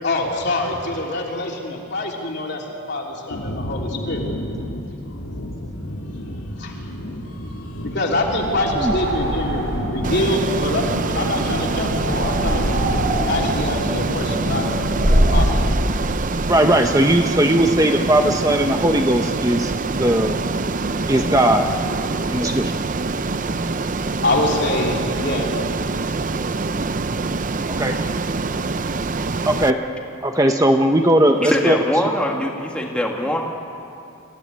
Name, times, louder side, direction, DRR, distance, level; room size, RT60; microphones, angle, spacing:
voice 1, 0.0-4.3 6.6-7.0 7.8-12.6 13.3-14.7 15.1-15.7 16.1-16.3 24.1-25.5, left 2 dB, 50° left, -1 dB, 3.5 m, -25 dB
sound 1, 3.3-15.2, equal, 90° left, 2.7 m, -30 dB
sound 2, 8.3-15.6, equal, 60° right, 6.3 m, -24 dB
Ocean, 10.0-29.7, right 3 dB, 35° right, 0.6 m, -25 dB
voice 2, 16.5-20.4 21.1-21.7 22.3-22.7 27.8-28.0 29.5-29.8 30.2-31.8, right 1 dB, 15° right, 4 dB, 0.9 m, -18 dB
voice 3, 31.4-33.4, equal, 5° left, -1 dB, 1.7 m, -22 dB
26.0 x 16.0 x 9.8 m, 2.6 s
head